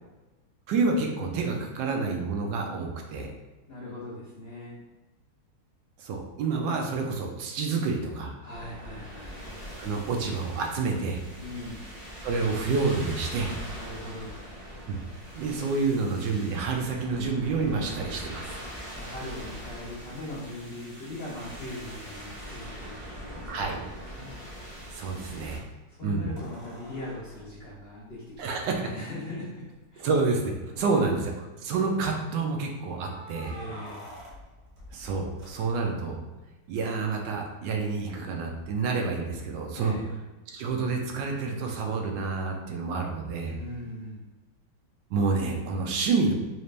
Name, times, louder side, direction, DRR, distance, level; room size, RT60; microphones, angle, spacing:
voice 1, 0.7-3.3 6.0-8.3 9.8-11.2 12.2-13.5 14.9-15.0 15.3-18.5 23.5-23.8 24.9-25.6 26.0-26.3 28.4-28.7 30.0-33.6 34.9-36.2 36.7-39.9 40.5-43.6 45.1-46.3, right 4 dB, 75° right, 2 dB, 1.2 m, -28 dB
voice 2, 3.7-4.8 8.4-9.4 11.4-12.0 13.7-14.4 18.8-24.4 25.9-29.6 29.9-30.1 30.7-31.2 33.5-34.1 39.7-40.1 43.5-44.2, left 1 dB, 70° left, -6 dB, 0.5 m, -40 dB
sound 1, 8.5-25.6, equal, 40° right, 0.6 m, -42 dB
sound 2, 26.4-28.7 29.7-29.8 30.1-30.2 30.7-31.2 32.9-36.1 38.6-38.7, equal, 55° right, 1.1 m, -48 dB
4.2 x 2.5 x 3.2 m, 1.1 s
omnidirectional pair, 2.1 m